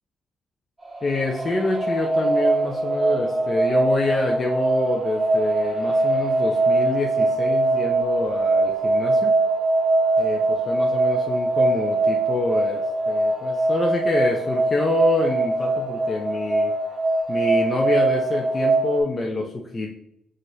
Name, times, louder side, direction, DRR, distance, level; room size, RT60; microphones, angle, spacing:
sound 1, 0.8-19.0, right 2 dB, 10° right, 1.6 m, -22 dB
voice 1, 1.0-9.3 10.2-16.7 17.3-19.9, left 2 dB, 35° left, 0 dB, 0.5 m, -26 dB
6.0 x 2.5 x 2.7 m, 0.77 s
cardioid pair, 80°, 0 cm